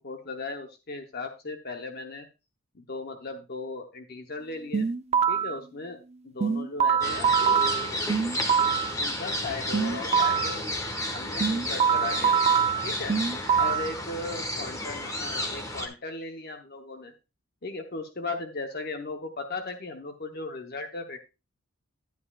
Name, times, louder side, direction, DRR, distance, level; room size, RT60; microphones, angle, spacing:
voice 1, 0.0-2.3 2.7-4.9 5.3-6.0 6.2-7.3 9.0-10.6 11.1-12.3 12.8-13.2 13.6-17.1 17.6-21.2, left 3 dB, 50° left, 5 dB, 0.8 m, -37 dB
sound 1, 4.7-5.6 6.4-8.9 9.7-10.6 11.4-13.9, right 7 dB, 30° right, 0.5 m, -24 dB
sound 2, 7.0-15.9, left 1 dB, 15° left, 1.3 m, -32 dB
10.5 x 9.9 x 2.3 m, 0.27 s
head